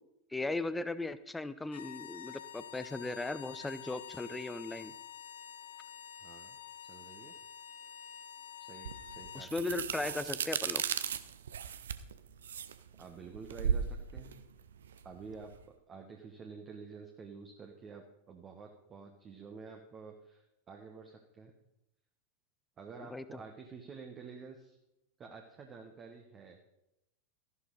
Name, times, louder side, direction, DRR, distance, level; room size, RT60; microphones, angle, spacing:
voice 1, 0.3-4.9 9.3-10.8 23.1-23.2, left 2 dB, 10° left, 14 dB, 0.7 m, -37 dB
sound 1, 1.6-9.5, left 9 dB, 60° left, 1.0 m, -48 dB
voice 2, 6.2-6.6 6.8-7.4 8.6-9.8 13.0-14.4 15.0-21.5 22.8-24.8 25.2-26.6, right 5 dB, 25° right, 3 dB, 1.4 m, -50 dB
sound 2, 8.9-15.6, right 7 dB, 65° right, 0.7 m, -36 dB
13.5 x 11.0 x 4.0 m, 0.86 s
figure-of-eight pair, 90°, 0 cm